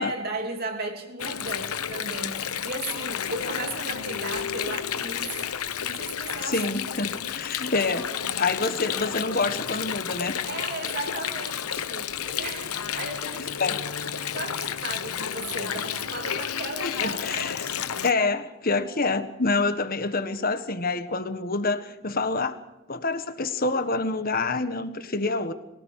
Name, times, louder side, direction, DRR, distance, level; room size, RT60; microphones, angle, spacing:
voice 1, 0.0-5.4 5.8-6.6 7.8-8.1 8.6-9.2 10.4-13.7 14.0-17.9, right 2 dB, 45° right, 2.9 m, -36 dB
Water, 1.2-18.1, left 8 dB, 90° left, 1.0 m, -31 dB
voice 2, 6.4-10.4 13.6-13.8 16.8-17.6 18.0-22.6 22.9-25.5, left 3 dB, 40° left, 1.5 m, -27 dB
23.0 x 18.0 x 6.5 m
head